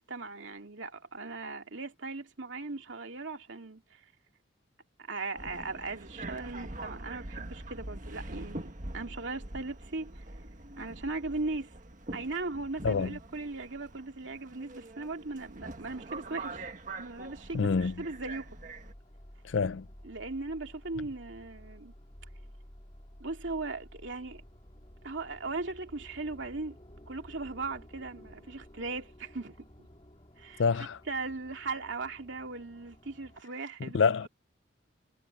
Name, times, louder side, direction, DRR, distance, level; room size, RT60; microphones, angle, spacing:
voice 1, 0.0-4.0 5.1-10.3 10.8-11.7 12.1-16.7 17.0-17.7 18.0-18.5 20.0-21.9 23.2-24.4 25.0-26.8 27.1-29.9 30.4-30.6 31.1-34.1, right 3 dB, 75° right, 2.5 m, -38 dB
Subway metro underground, 5.4-18.9, right 2 dB, 40° right, 1.5 m, -44 dB
voice 2, 12.8-13.2 17.5-18.0 19.4-19.9 30.6-31.0 33.8-34.3, left 5 dB, 75° left, 0.5 m, -27 dB
sound 1, 17.4-33.4, equal, 30° left, 3.0 m, -53 dB
head